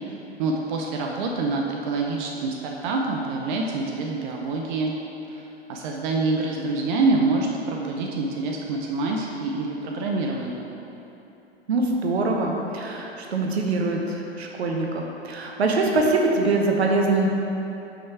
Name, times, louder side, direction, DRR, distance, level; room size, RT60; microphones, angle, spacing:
voice 1, 0.4-4.9 5.3-5.4 5.7-10.7, right 3 dB, 45° right, 0 dB, 0.7 m, -26 dB
voice 2, 11.7-17.3, right 3 dB, 75° right, 1 dB, 1.0 m, -23 dB
5.7 x 5.2 x 4.6 m, 3.0 s
figure-of-eight pair, 100°, 32 cm